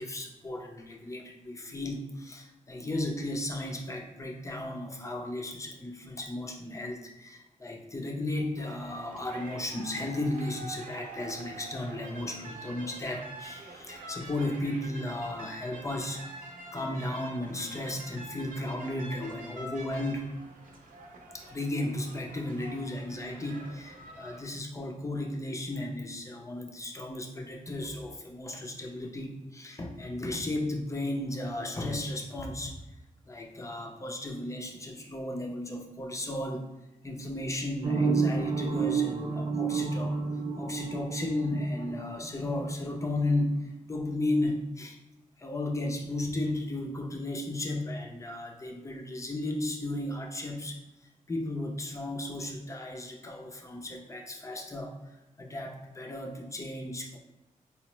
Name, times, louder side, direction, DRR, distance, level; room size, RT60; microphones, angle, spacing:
voice 1, 0.0-16.5 16.7-20.4 21.3-32.7 33.3-36.6 37.0-40.2 40.6-45.0 45.4-50.8 51.3-55.0 55.4-57.2, left 1 dB, 20° left, 1 dB, 0.5 m, -34 dB
sound 1, 8.6-24.4, right 2 dB, 80° right, 0.6 m, -46 dB
sound 2, 37.8-42.6, right 4 dB, 40° right, 0.5 m, -30 dB
4.3 x 2.0 x 2.9 m, 0.96 s
wide cardioid pair, 110°, 14 cm